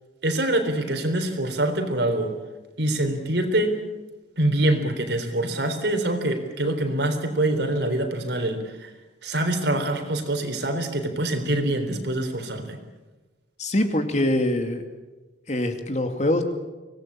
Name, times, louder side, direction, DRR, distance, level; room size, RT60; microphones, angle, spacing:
voice 1, 0.2-2.4 2.8-3.8 4.4-8.9 9.2-12.8, right 1 dB, 70° right, 6 dB, 3.7 m, -25 dB
voice 2, 13.6-14.8 15.5-16.4, left 1 dB, 40° left, 6 dB, 2.4 m, -23 dB
25.0 x 18.5 x 8.7 m, 1.2 s
head